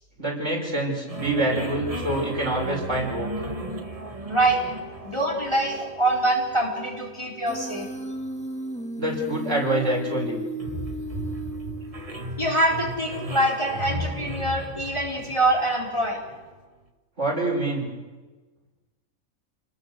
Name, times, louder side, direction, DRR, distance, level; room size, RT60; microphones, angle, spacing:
voice 1, 0.2-3.3 9.0-10.4 17.2-17.9, right 1 dB, 55° right, 0 dB, 5.9 m, -26 dB
sound 1, 1.1-16.5, right 1 dB, 25° right, 1.9 m, -36 dB
voice 2, 4.3-4.6 5.0-7.9 12.4-16.2, right 1 dB, 20° left, -2 dB, 4.5 m, -24 dB
Human voice, 7.5-12.4, right 1 dB, 5° left, 1.7 m, -34 dB
28.5 x 20.5 x 7.9 m, 1.3 s
omnidirectional pair, 1.4 m